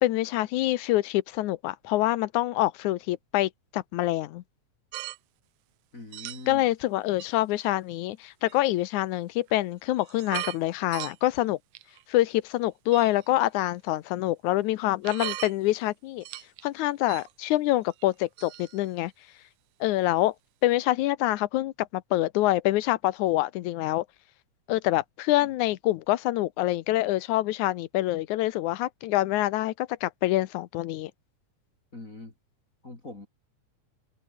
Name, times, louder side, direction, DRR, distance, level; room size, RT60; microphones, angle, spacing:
voice 1, 0.0-4.4 6.5-11.6 12.1-16.2 16.6-19.1 19.8-20.3 20.6-24.1 24.7-31.1, left 16 dB, 80° left, 2.1 m, -26 dB
sound 1, 4.9-5.2 6.1-6.6 7.2-7.3 8.4-8.6 9.5-9.6 10.0-10.6 10.9-11.2 11.7-12.2 12.9-13.3 15.0-15.5 16.2-16.6 17.1-17.3 17.9-18.1 18.4-18.9, right 16 dB, 85° right, 1.4 m, -38 dB
voice 2, 5.9-6.7 31.9-32.3 32.8-33.3, left 2 dB, 25° left, 4.1 m, -42 dB
omnidirectional pair, 3.6 m